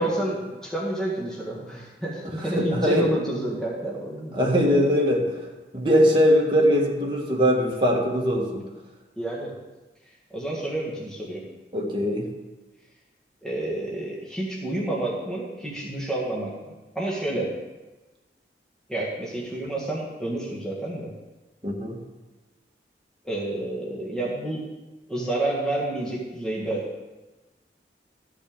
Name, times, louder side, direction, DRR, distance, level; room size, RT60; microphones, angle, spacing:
voice 1, 0.0-4.7 9.2-9.5 10.3-11.4 13.4-17.5 18.9-21.1 23.2-24.6 25.1-26.8, right 1 dB, 5° left, -5 dB, 1.7 m, -29 dB
voice 2, 2.6-3.1 4.3-5.3 5.7-8.6 11.7-12.3 21.6-22.0, equal, 30° right, -1 dB, 1.6 m, -21 dB
13.5 x 6.5 x 5.1 m, 1.2 s
head